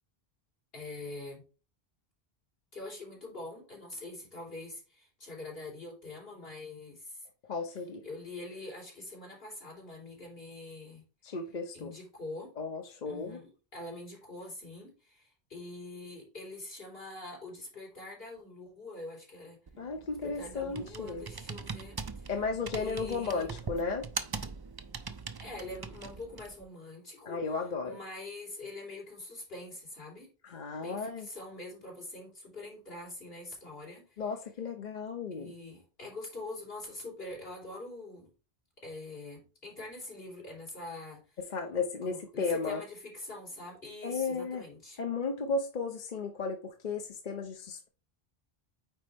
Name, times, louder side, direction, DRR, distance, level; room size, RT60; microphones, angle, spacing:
voice 1, 0.7-1.4 2.7-7.3 8.0-11.1 11.7-12.5 13.0-19.6 20.2-22.3 22.8-23.5 25.4-27.6 27.8-30.3 30.8-34.2 35.3-38.3 38.8-41.4 42.0-45.0, left 2 dB, 70° left, 3.9 m, -44 dB
voice 2, 7.5-8.0 11.2-11.9 12.6-13.4 19.8-21.2 22.3-24.1 27.3-28.0 30.4-31.3 34.2-35.5 41.4-42.8 44.0-44.6 45.0-47.9, left 4 dB, 50° left, 0.9 m, -34 dB
Computer keyboard, 19.7-26.6, right 4 dB, 35° right, 0.4 m, -42 dB
9.0 x 4.3 x 3.4 m
omnidirectional pair, 1.0 m